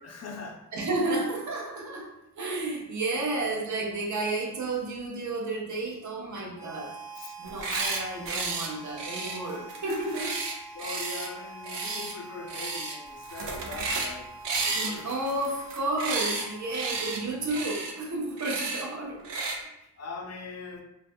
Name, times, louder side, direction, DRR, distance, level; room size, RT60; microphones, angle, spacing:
voice 1, 0.0-0.6 3.3-3.6 7.2-7.3 7.7-8.0 8.3-8.4 10.7-14.3 14.6-15.1 20.0-20.8, left 4 dB, 40° left, 3 dB, 0.4 m, -41 dB
voice 2, 0.7-7.0 7.4-10.3 14.7-19.2, right 2 dB, 45° right, -1 dB, 0.6 m, -32 dB
Harmonica, 6.5-17.6, right 2 dB, 5° right, 0.7 m, -46 dB
sound 1, 7.4-8.0 8.3-8.7 9.0-11.3 11.6-12.1 12.5-13.0 13.2-14.1 14.4-16.4 16.7-17.2 17.5-17.9 18.4-18.8 19.2-19.6, right 3 dB, 85° right, 0.5 m, -32 dB
2.2 x 2.2 x 2.6 m, 0.87 s
wide cardioid pair, 85°, 41 cm